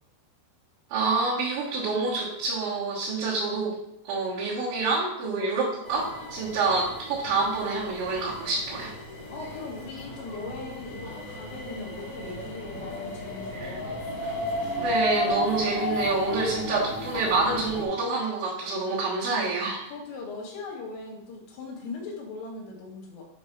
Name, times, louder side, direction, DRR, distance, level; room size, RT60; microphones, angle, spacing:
voice 1, 0.9-3.8 4.0-8.9 13.5-13.8 14.8-19.8, right 3 dB, 70° right, -9 dB, 3.8 m, -27 dB
sound 1, 5.9-17.8, left 1 dB, 55° left, 1.6 m, -34 dB
voice 2, 9.3-14.0 19.9-23.2, left 3 dB, 90° left, -2 dB, 4.3 m, -39 dB
9.4 x 3.2 x 5.8 m, 0.78 s
omnidirectional pair, 5.6 m